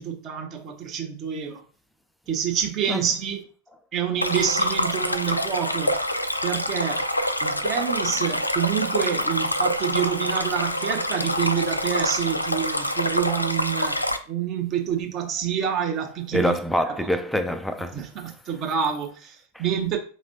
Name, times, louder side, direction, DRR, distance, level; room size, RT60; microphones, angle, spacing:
voice 1, 0.0-1.6 2.3-3.4 3.9-6.0 6.4-7.1 7.4-16.5 16.9-17.1 17.9-20.0, right 9 dB, 35° right, 0.9 m, -27 dB
Stream, 4.2-14.2, left 1 dB, 85° left, 0.3 m, -26 dB
voice 2, 16.3-18.1 19.5-19.6, equal, 5° left, 0.4 m, -25 dB
5.2 x 3.1 x 2.6 m
figure-of-eight pair, 90°, 0 cm